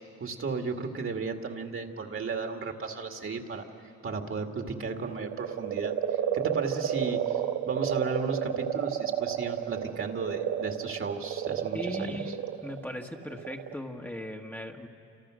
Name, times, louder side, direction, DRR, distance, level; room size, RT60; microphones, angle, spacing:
voice 1, 0.2-3.6 4.0-7.4 7.7-12.2, right 4 dB, 45° right, 4 dB, 2.2 m, -34 dB
sound 1, 5.0-13.8, right 10 dB, 85° right, 0.9 m, -31 dB
voice 2, 11.7-14.9, left 1 dB, 5° left, 1 dB, 1.6 m, -38 dB
29.0 x 26.5 x 6.4 m, 2.6 s
cardioid pair, 90°, 30 cm